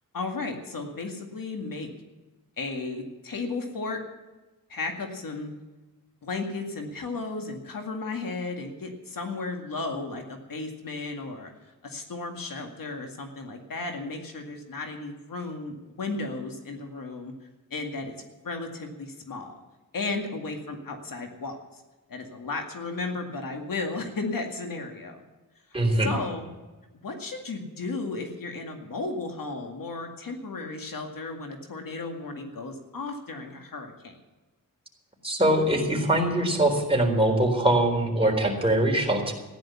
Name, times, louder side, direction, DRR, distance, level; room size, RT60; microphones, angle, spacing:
voice 1, 0.1-1.9 2.6-4.0 4.7-5.5 6.2-11.5 11.8-17.3 17.7-18.1 18.4-19.6 19.9-21.8 22.1-25.2 25.7-26.5 26.9-34.2, left 3 dB, 75° left, 4 dB, 2.1 m, -34 dB
voice 2, 25.7-26.1 35.2-39.3, right 1 dB, 15° right, 0 dB, 3.9 m, -23 dB
14.5 x 11.0 x 7.1 m, 1.2 s
wide cardioid pair, 90°, 34 cm